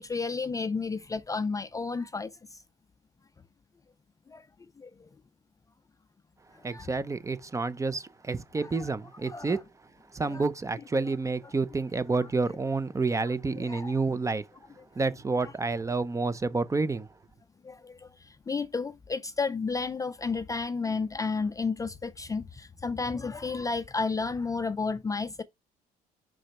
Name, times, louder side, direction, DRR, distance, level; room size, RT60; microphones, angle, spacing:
voice 1, 0.0-2.3 4.3-4.4 4.8-5.1 6.7-6.9 8.6-8.9 9.3-9.6 10.2-10.4 13.6-13.9 15.4-15.5 17.6-18.1 18.5-25.4, left 4 dB, 20° left, 0.5 m, -32 dB
voice 2, 6.6-9.6 10.1-14.4 15.0-17.1, right 3 dB, 20° right, 0.7 m, -29 dB
5.9 x 5.0 x 4.4 m
cardioid pair, 110°, 17 cm